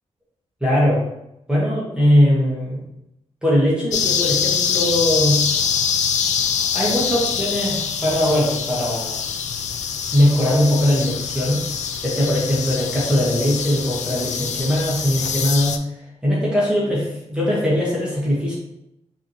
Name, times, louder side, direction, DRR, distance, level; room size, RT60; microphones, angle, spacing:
voice 1, 0.6-1.0 1.5-2.8 3.4-5.4 6.7-9.2 10.1-11.6 12.0-15.8 16.2-18.5, equal, 5° right, -7 dB, 1.0 m, -20 dB
sound 1, 3.9-15.8, left 7 dB, 80° left, 0.4 m, -24 dB
5.9 x 2.8 x 2.7 m, 0.84 s
wide cardioid pair, 170°, 12 cm